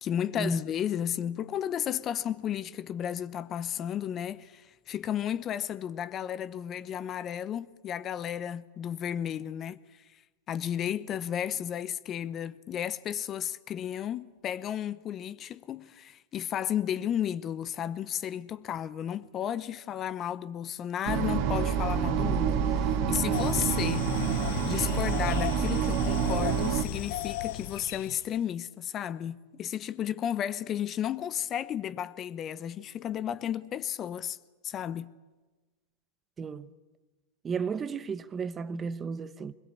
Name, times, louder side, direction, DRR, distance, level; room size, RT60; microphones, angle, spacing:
voice 1, 0.0-10.2 10.5-24.2 24.6-34.4 34.6-35.1, left 10 dB, 35° left, 0.9 m, -33 dB
sound 1, 21.0-26.8, right 7 dB, 55° right, 2.2 m, -27 dB
sound 2, 23.3-28.3, left 15 dB, 65° left, 0.7 m, -36 dB
voice 2, 36.4-36.7 37.4-39.5, right 5 dB, 25° right, 1.1 m, -33 dB
24.0 x 21.5 x 8.6 m
hypercardioid pair, 105°, 0 cm